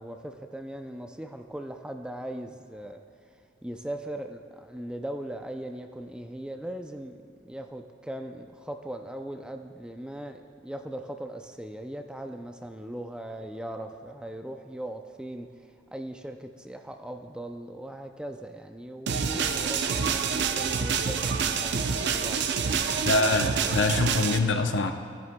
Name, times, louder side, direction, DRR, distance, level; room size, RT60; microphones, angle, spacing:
voice 1, 0.0-3.0 3.6-7.1 7.4-22.8, right 1 dB, 5° right, 5 dB, 0.4 m, -39 dB
sound 1, 19.1-24.4, right 6 dB, 65° right, 0.5 m, -27 dB
voice 2, 23.1-24.9, left 3 dB, 75° left, 6 dB, 0.6 m, -24 dB
14.5 x 10.5 x 2.2 m, 2.5 s
head